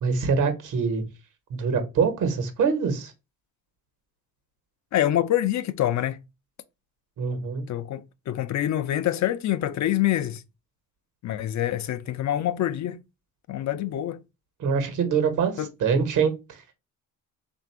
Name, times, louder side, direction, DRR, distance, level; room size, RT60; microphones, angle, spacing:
voice 1, 0.0-1.0 1.5-3.1 7.2-7.6 14.6-15.5 15.8-16.3, right 5 dB, 60° right, 1.2 m, -24 dB
voice 2, 4.9-6.2 7.7-10.4 11.2-13.0 13.5-14.2 15.6-15.7, left 12 dB, 55° left, 0.5 m, -26 dB
3.5 x 2.6 x 4.5 m
cardioid pair, 85°, 34 cm